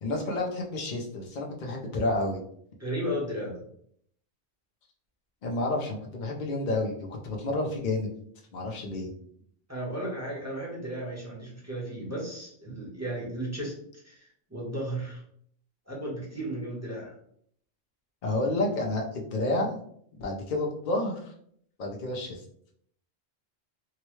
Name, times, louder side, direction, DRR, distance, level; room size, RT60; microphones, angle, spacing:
voice 1, 0.0-2.4 5.4-8.1 8.5-9.1 18.2-19.8 20.1-21.3 21.8-22.4, left 2 dB, 50° left, 0 dB, 0.7 m, -30 dB
voice 2, 2.8-3.6 9.7-13.7 14.0-15.2 15.9-17.1, right 1 dB, 15° right, -5 dB, 0.9 m, -34 dB
3.7 x 2.2 x 3.1 m, 0.67 s
omnidirectional pair, 1.2 m